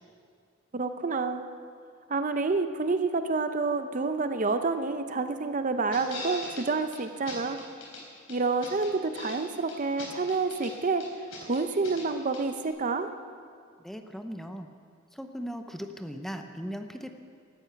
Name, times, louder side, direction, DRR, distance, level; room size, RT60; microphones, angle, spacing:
voice 1, 0.7-1.5 2.1-7.6 8.3-11.1 11.4-13.1, right 3 dB, 40° right, 9 dB, 0.7 m, -28 dB
sound 1, 5.9-6.7 6.9-7.0 7.3-8.0 8.3-9.4 9.7-10.7 11.0-12.1 12.3-12.4, left 3 dB, 75° left, 4.0 m, -41 dB
voice 2, 13.8-14.7 15.1-17.1, equal, ahead, 6 dB, 0.7 m, -38 dB
16.0 x 13.0 x 5.8 m, 2.2 s
head